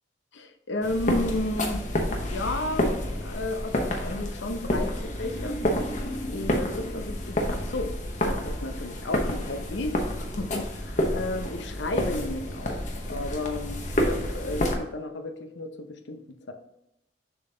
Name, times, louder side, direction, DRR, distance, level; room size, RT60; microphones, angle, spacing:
voice 1, 0.3-1.8 2.1-5.6 6.3-8.0 8.2-12.8 13.1-16.2 16.5-16.6, left 2 dB, 80° left, 6 dB, 0.7 m, -33 dB
sound 1, 0.8-14.8, left 1 dB, 40° left, 0.8 m, -29 dB
6.8 x 3.9 x 3.8 m, 0.82 s
head